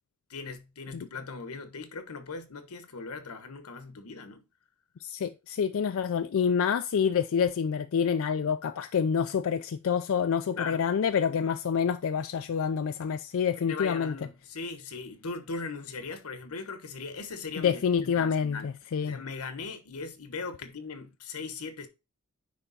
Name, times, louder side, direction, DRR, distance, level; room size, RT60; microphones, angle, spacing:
voice 1, 0.3-4.4 10.5-10.8 13.6-18.7 19.0-21.9, left 4 dB, 90° left, 1.1 m, -39 dB
voice 2, 5.0-14.1 17.6-19.2, left 7 dB, 65° left, 0.4 m, -27 dB
9.7 x 3.4 x 4.0 m
head